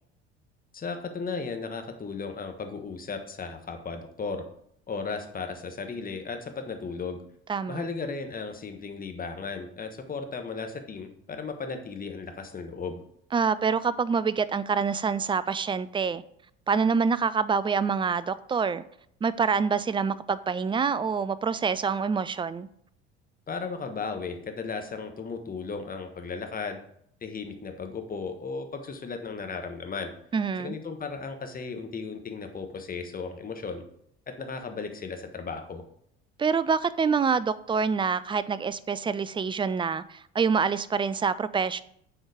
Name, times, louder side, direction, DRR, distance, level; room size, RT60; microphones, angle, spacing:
voice 1, 0.7-4.4 4.9-7.2 7.7-13.0 23.5-26.8 27.2-30.1 30.6-33.8 34.3-35.8, left 4 dB, 25° left, 1.4 m, -35 dB
voice 2, 7.5-7.8 13.3-16.2 16.7-18.8 19.2-22.7 30.3-30.8 36.4-41.8, right 5 dB, 15° right, 0.4 m, -26 dB
7.8 x 4.5 x 5.1 m
hypercardioid pair, 65°, 32 cm